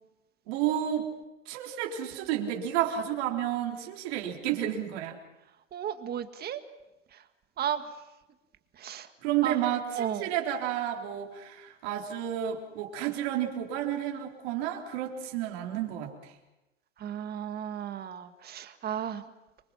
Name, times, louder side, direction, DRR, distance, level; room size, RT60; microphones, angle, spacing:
voice 1, 0.5-1.1 1.5-5.2 9.2-16.3, right 11 dB, 55° right, 0 dB, 3.8 m, -31 dB
voice 2, 5.7-6.6 7.6-7.8 8.8-9.1 9.4-9.6 10.0-10.3 17.0-19.2, right 9 dB, 25° right, 9 dB, 1.7 m, -34 dB
25.5 x 23.5 x 5.9 m, 1.0 s
hypercardioid pair, 120°, 37 cm